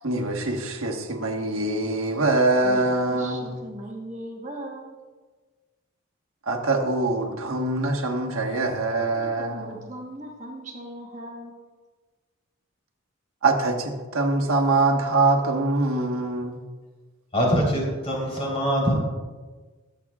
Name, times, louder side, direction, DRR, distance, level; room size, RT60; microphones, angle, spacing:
voice 1, 0.0-3.6 6.5-9.7 13.4-16.6, right 2 dB, 85° right, 2 dB, 1.4 m, -24 dB
voice 2, 2.6-5.0 9.2-11.6, right 1 dB, 35° right, 0 dB, 1.3 m, -38 dB
voice 3, 17.3-18.9, equal, 30° left, -3 dB, 3.7 m, -23 dB
21.0 x 8.1 x 2.4 m, 1.3 s
head